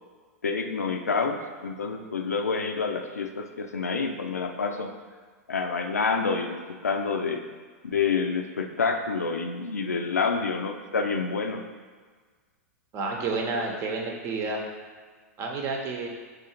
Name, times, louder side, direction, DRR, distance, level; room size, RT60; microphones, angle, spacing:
voice 1, 0.4-4.9 5.5-7.4 7.8-11.6, left 5 dB, 85° left, 5 dB, 0.4 m, -28 dB
voice 2, 12.9-14.6 15.4-16.1, right 3 dB, 35° right, 1 dB, 0.8 m, -30 dB
4.7 x 2.6 x 4.3 m, 1.5 s
figure-of-eight pair, 100°, 8 cm